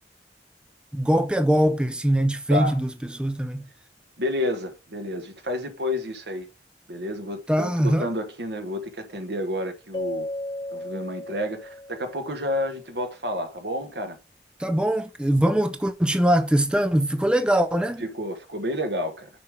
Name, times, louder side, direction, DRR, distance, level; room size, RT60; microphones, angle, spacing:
voice 1, 0.9-3.7 7.5-8.1 14.6-18.0, right 1 dB, 5° right, 0.5 m, -22 dB
voice 2, 4.2-6.5 6.9-10.3 10.7-14.2 18.0-19.3, left 1 dB, 75° right, 1.4 m, -30 dB
Keyboard (musical), 9.9-12.4, left 1 dB, 30° left, 1.2 m, -34 dB
6.8 x 5.4 x 3.5 m
head